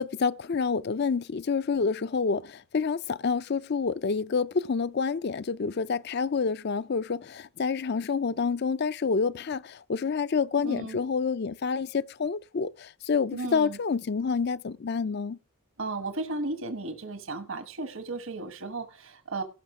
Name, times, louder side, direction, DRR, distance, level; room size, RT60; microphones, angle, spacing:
voice 1, 0.0-15.4, left 5 dB, 50° left, 0.4 m, -28 dB
voice 2, 10.6-11.0 13.3-13.8 15.8-19.4, right 2 dB, 65° right, 1.2 m, -34 dB
17.0 x 6.0 x 4.9 m
head